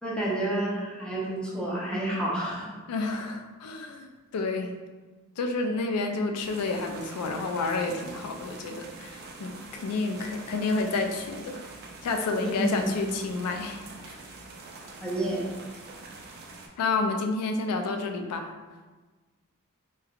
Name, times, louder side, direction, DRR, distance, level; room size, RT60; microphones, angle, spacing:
voice 1, 0.0-2.7 12.4-13.0 15.0-15.5, right 1 dB, 5° left, -6 dB, 0.5 m, -29 dB
voice 2, 2.9-4.8 5.4-11.6 12.0-14.1 16.8-18.5, left 3 dB, 85° left, 5 dB, 0.3 m, -30 dB
sound 1, 6.4-16.7, right 3 dB, 45° right, 0.3 m, -45 dB
3.1 x 2.2 x 2.3 m, 1.3 s
head